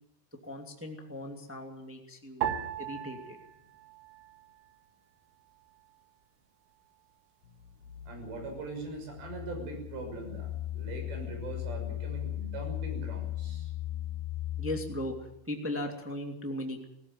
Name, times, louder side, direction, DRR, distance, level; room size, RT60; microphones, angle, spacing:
voice 1, 0.4-2.5 2.8-3.4 14.6-16.8, left 1 dB, 15° right, 2 dB, 0.5 m, -37 dB
sound 1, 2.4-4.9 5.2-6.1 6.7-7.1, right 10 dB, 80° right, 4.1 m, -38 dB
sound 2, 7.4-15.3, left 13 dB, 65° left, 1.8 m, -38 dB
voice 2, 8.1-13.7, right 3 dB, 65° right, 3 dB, 8.3 m, -41 dB
19.5 x 18.0 x 9.0 m, 0.78 s
omnidirectional pair, 5.5 m